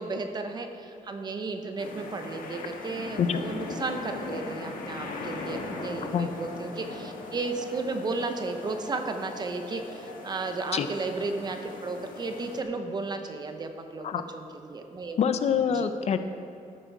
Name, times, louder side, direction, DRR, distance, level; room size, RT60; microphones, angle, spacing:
voice 1, 0.0-15.2 15.7-15.9, right 3 dB, 30° right, 6 dB, 0.7 m, -34 dB
sound 1, 1.8-12.6, left 3 dB, 80° left, 1.4 m, -39 dB
voice 2, 15.2-16.2, left 7 dB, 50° left, 9 dB, 0.5 m, -25 dB
13.5 x 7.5 x 4.7 m, 2.7 s
wide cardioid pair, 180°, 14 cm